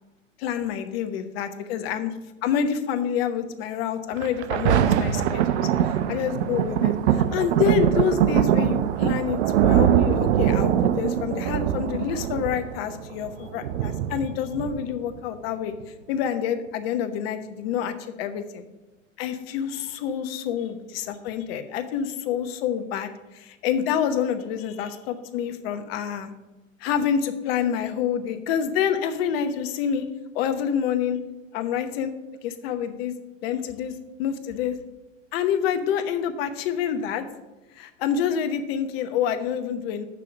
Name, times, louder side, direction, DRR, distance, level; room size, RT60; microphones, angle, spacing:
voice 1, 0.4-2.1 2.4-5.7 6.1-15.7 16.1-18.6 19.2-26.3 26.8-30.1 30.3-31.2 31.5-32.1 32.4-33.1 33.4-34.7 35.3-37.2 37.7-40.1, left 8 dB, 50° left, 8 dB, 1.0 m, -27 dB
Thunder, 4.2-15.2 15.8-15.9, right 10 dB, 60° right, 0.7 m, -23 dB
6.8 x 5.0 x 6.8 m, 1.1 s
hypercardioid pair, 110°, 39 cm